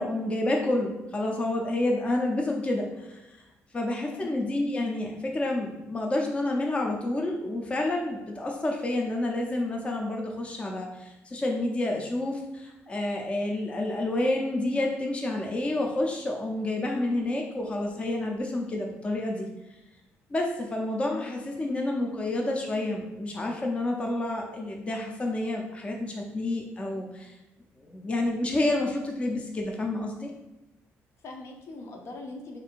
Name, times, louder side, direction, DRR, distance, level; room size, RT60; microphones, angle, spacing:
voice 1, 0.0-3.4 3.7-19.5 20.3-27.3 27.8-30.3, left 2 dB, 20° left, 0 dB, 0.5 m, -29 dB
voice 2, 31.2-32.6, left 2 dB, 60° left, 2 dB, 0.6 m, -41 dB
3.3 x 2.5 x 4.4 m, 0.97 s
cardioid pair, 125°, 5 cm